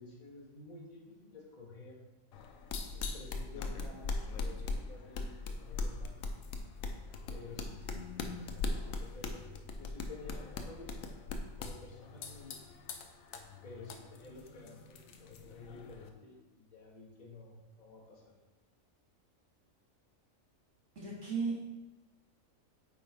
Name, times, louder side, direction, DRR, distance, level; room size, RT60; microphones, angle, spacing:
voice 1, 0.0-2.0 2.9-6.2 7.3-12.5 13.6-18.2, left 3 dB, 35° left, -5 dB, 1.7 m, -52 dB
sound 1, 2.3-16.1, left 3 dB, 80° left, 1.0 m, -40 dB
voice 2, 7.9-8.5 21.0-21.6, right 4 dB, 55° right, -7 dB, 2.3 m, -37 dB
8.6 x 4.5 x 3.4 m, 1.1 s
omnidirectional pair, 1.4 m